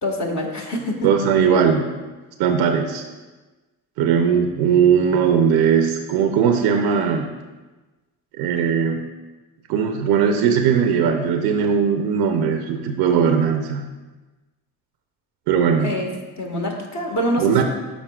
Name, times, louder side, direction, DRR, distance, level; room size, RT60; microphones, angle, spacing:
voice 1, 0.0-1.1 15.8-16.1 16.4-17.6, left 1 dB, 45° left, 0 dB, 1.5 m, -25 dB
voice 2, 1.0-1.9 2.4-3.0 4.0-7.3 8.4-9.0 9.7-13.9 15.5-15.9 17.4-17.6, right 7 dB, 75° right, 5 dB, 0.6 m, -19 dB
11.5 x 4.2 x 2.3 m, 1.2 s
supercardioid pair, 70°, 39 cm